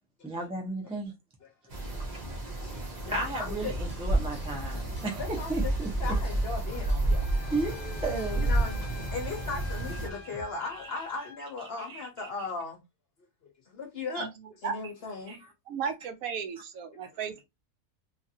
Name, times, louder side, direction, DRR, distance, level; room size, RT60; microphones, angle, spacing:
voice 1, 0.2-1.1 3.1-5.9 7.5-8.5 10.9-11.0 11.9-12.3 15.3-15.4, right 3 dB, 5° right, 0.4 m, -34 dB
sound 1, 1.7-10.1, right 1 dB, 40° right, 0.7 m, -31 dB
voice 2, 2.6-3.7 4.7-4.8 5.1-5.7 6.0-7.3 8.4-12.8 13.7-14.3 14.6-15.4, left 4 dB, 50° left, 0.8 m, -37 dB
sound 2, 3.6-10.8, left 1 dB, 25° left, 0.7 m, -42 dB
Wind instrument woodwind instrument, 7.1-11.4, left 5 dB, 80° left, 1.0 m, -47 dB
voice 3, 15.7-17.5, right 6 dB, 75° right, 1.0 m, -34 dB
2.9 x 2.5 x 2.7 m
omnidirectional pair, 1.5 m